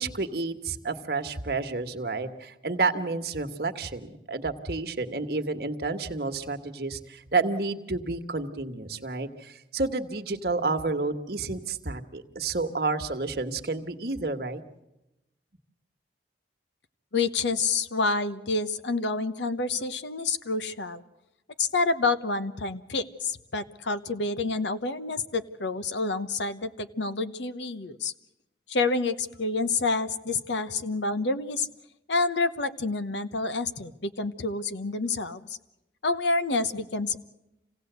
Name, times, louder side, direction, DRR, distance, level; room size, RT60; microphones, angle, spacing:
voice 1, 0.0-14.6, right 3 dB, 60° right, 6 dB, 1.4 m, -30 dB
voice 2, 17.1-21.0 21.6-28.1 28.7-31.7 32.1-35.6 36.0-37.2, left 3 dB, 85° left, 12 dB, 1.0 m, -28 dB
26.5 x 17.0 x 8.0 m, 0.93 s
head